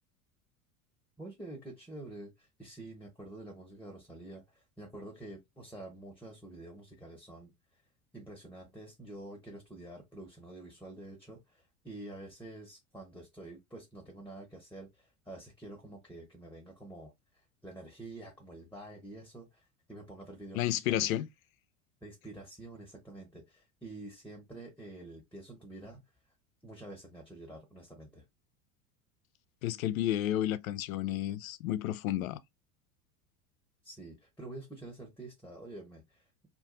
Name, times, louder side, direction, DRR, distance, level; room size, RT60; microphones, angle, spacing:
voice 1, 1.2-7.5 8.1-17.1 17.6-21.1 22.0-26.0 26.6-28.2 33.8-36.5, right 2 dB, 5° left, 1.1 m, -48 dB
voice 2, 20.5-21.3 29.6-32.4, left 13 dB, 65° left, 0.5 m, -31 dB
2.5 x 2.5 x 3.8 m
figure-of-eight pair, 80°, 45 cm